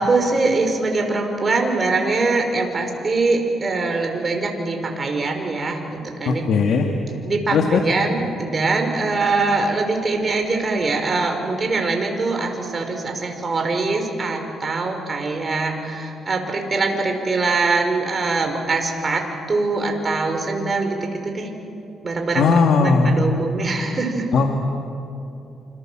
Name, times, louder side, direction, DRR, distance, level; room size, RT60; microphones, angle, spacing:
voice 1, 0.0-6.4 7.2-19.2 19.5-21.5 22.0-24.2, right 3 dB, 35° right, 4 dB, 5.3 m, -23 dB
voice 2, 6.2-6.9 7.5-7.8 22.4-23.1 24.3-24.6, left 5 dB, 70° left, 2 dB, 2.3 m, -17 dB
28.0 x 27.5 x 7.7 m, 2.7 s
cardioid pair, 90°, 0 cm